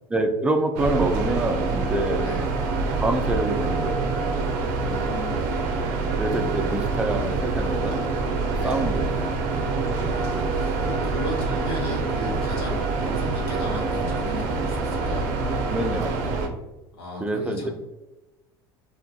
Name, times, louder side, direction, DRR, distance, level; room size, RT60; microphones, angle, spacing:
voice 1, 0.1-2.3 3.0-4.1 5.9-8.0 8.5-9.1 15.7-16.5 17.2-17.7, right 2 dB, 10° right, 5 dB, 0.3 m, -26 dB
sound 1, 0.8-16.5, right 3 dB, 70° right, 0.5 m, -26 dB
voice 2, 2.1-2.5 4.8-5.5 8.5-8.9 10.0-15.3 17.0-17.7, left 1 dB, 85° left, -3 dB, 1.0 m, -35 dB
2.5 x 2.4 x 2.3 m, 1.0 s
hypercardioid pair, 85°, 13 cm